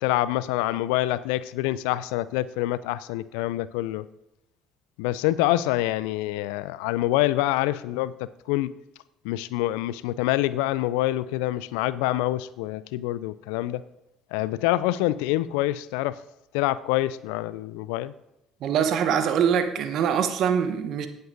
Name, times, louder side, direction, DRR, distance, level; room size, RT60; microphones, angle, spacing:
voice 1, 0.0-4.1 5.0-8.1 8.5-8.7 9.2-13.8 14.3-16.2 16.5-18.1, left 15 dB, 75° left, 0.3 m, -26 dB
voice 2, 18.6-21.1, right 8 dB, 60° right, 0.9 m, -23 dB
17.5 x 7.9 x 2.6 m
hypercardioid pair, 50°, 0 cm